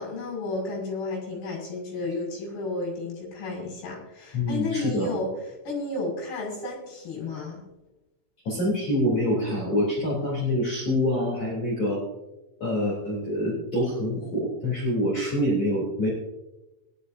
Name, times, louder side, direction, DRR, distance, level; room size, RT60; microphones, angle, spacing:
voice 1, 0.0-7.6, left 2 dB, 55° left, -3 dB, 7.5 m, -32 dB
voice 2, 4.3-5.1 8.4-12.0 12.6-16.1, left 1 dB, 35° left, -6 dB, 3.9 m, -26 dB
21.0 x 12.5 x 2.7 m, 1.0 s
omnidirectional pair, 5.7 m